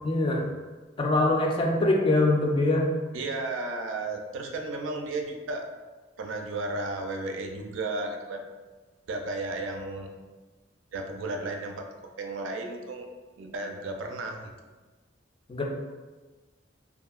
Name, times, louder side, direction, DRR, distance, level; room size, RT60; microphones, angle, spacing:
voice 1, 0.0-0.5 1.0-2.9 15.5-15.6, left 2 dB, 25° left, 1 dB, 0.3 m, -23 dB
voice 2, 3.1-5.7 6.2-8.4 9.1-10.1 10.9-11.9 12.2-13.1 13.4-14.5, right 2 dB, 85° right, 3 dB, 0.4 m, -33 dB
2.7 x 2.5 x 2.3 m, 1.3 s
head